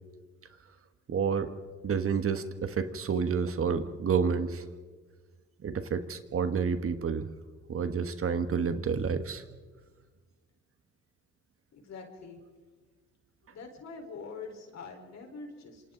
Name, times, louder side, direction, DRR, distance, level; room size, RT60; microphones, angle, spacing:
voice 1, 1.1-1.5 1.8-4.6 5.6-7.3 7.7-9.4, right 6 dB, 45° right, 9 dB, 1.5 m, -29 dB
voice 2, 11.7-12.4 13.5-15.8, left 4 dB, 60° left, 3 dB, 4.5 m, -44 dB
27.5 x 25.5 x 4.0 m, 1.4 s
cardioid pair, 90°, 30 cm